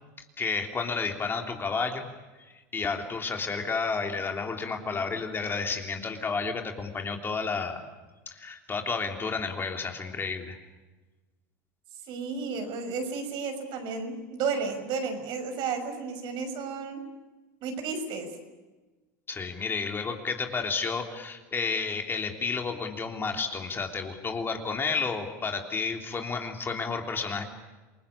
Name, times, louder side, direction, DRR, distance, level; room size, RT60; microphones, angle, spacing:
voice 1, 0.4-2.0 2.4-7.8 8.3-10.6 19.3-27.4, left 4 dB, 25° left, 4 dB, 3.4 m, -31 dB
voice 2, 12.1-17.0 17.6-18.3, right 5 dB, 60° right, 6 dB, 6.1 m, -32 dB
28.0 x 19.5 x 8.6 m, 1.2 s
supercardioid pair, 100°, 9 cm